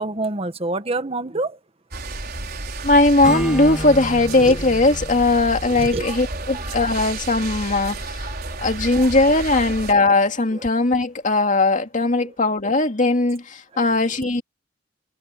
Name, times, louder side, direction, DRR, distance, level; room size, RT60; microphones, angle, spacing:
voice 1, 0.0-1.6 4.4-4.6 5.7-6.9 8.2-8.6 8.9-9.1 10.5-10.6 12.2-12.3, right 2 dB, 35° right, 1.5 m, -28 dB
sound 1, 1.9-9.9, right 2 dB, 60° right, 5.3 m, -31 dB
voice 2, 2.8-8.3 8.6-14.4, left 2 dB, 45° left, 2.2 m, -19 dB
Acoustic guitar / Strum, 3.2-7.2, equal, 5° right, 5.9 m, -33 dB
head